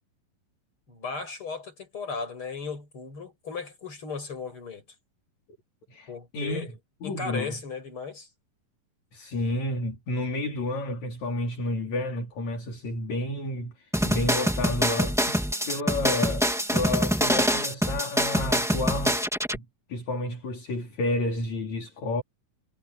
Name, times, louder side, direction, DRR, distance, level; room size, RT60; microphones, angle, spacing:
voice 1, 0.9-4.8 6.1-6.7 7.0-8.3, left 5 dB, 35° left, 8.1 m, -36 dB
voice 2, 5.9-6.7 7.0-7.6 9.1-15.4 15.7-19.2 19.5-22.2, left 2 dB, 55° left, 4.5 m, -31 dB
sound 1, 13.9-19.6, equal, ahead, 2.0 m, -25 dB
omnidirectional pair, 3.9 m